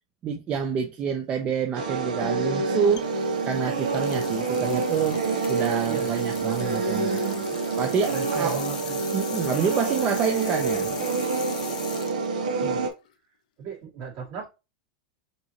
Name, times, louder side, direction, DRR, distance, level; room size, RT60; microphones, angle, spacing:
voice 1, 0.2-3.1 3.4-8.6 9.1-11.0 11.6-11.7, right 7 dB, 30° right, 0.7 m, -28 dB
sound 1, 1.7-12.9, right 4 dB, 85° right, 1.2 m, -27 dB
sound 2, 3.0-13.1, left 10 dB, 80° left, 0.7 m, -41 dB
voice 2, 5.8-7.1 8.1-9.0 12.6-12.9 13.6-14.5, right 7 dB, 55° right, 2.6 m, -37 dB
5.3 x 2.9 x 2.9 m
supercardioid pair, 125°, 4 cm